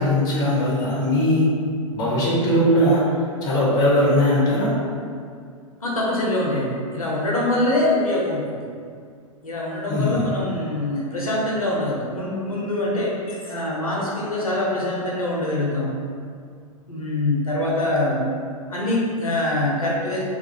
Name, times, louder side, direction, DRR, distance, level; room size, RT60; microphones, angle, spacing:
voice 1, 0.0-1.5 1.9-3.0 3.4-4.7 9.9-10.2, equal, 20° left, -6 dB, 0.6 m, -19 dB
voice 2, 5.8-8.6 9.4-16.0 16.9-18.3 18.7-20.2, left 1 dB, 75° left, -4 dB, 0.6 m, -24 dB
2.3 x 2.0 x 2.8 m, 2.2 s
figure-of-eight pair, 105°, 18 cm